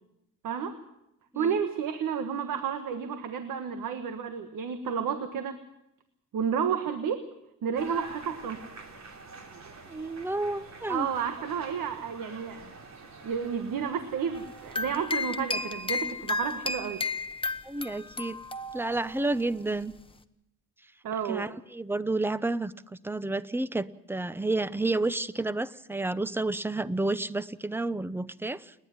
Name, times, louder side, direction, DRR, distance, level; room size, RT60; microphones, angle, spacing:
voice 1, 0.4-0.8 1.3-5.6 6.3-7.3 7.6-8.6 10.9-12.7 13.2-17.0 21.0-21.5, right 7 dB, 75° right, 9 dB, 1.5 m, -31 dB
sound 1, 7.8-15.1, right 4 dB, 55° right, 3.2 m, -46 dB
voice 2, 9.9-11.1 17.6-18.4 18.7-19.9 21.3-22.7 23.0-28.7, right 2 dB, 5° right, 16 dB, 0.7 m, -30 dB
sound 2, 14.3-19.2, left 3 dB, 15° left, 1.0 m, -33 dB
29.5 x 10.5 x 9.6 m, 0.85 s
cardioid pair, 110°, 33 cm